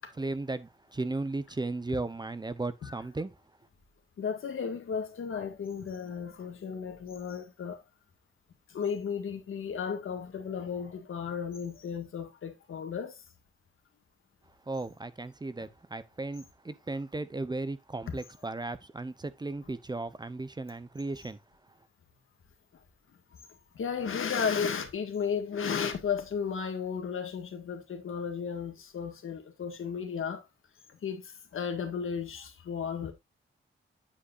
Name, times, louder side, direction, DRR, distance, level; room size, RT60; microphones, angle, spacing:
voice 1, 0.1-3.4 14.7-21.4 21.7-21.8, right 2 dB, 20° right, 0.7 m, -36 dB
voice 2, 4.2-7.8 8.7-13.2 18.1-18.2 23.8-30.4 31.0-33.1, left 6 dB, 80° left, 1.8 m, -34 dB
8.5 x 7.7 x 2.5 m
cardioid pair, 90°, 21 cm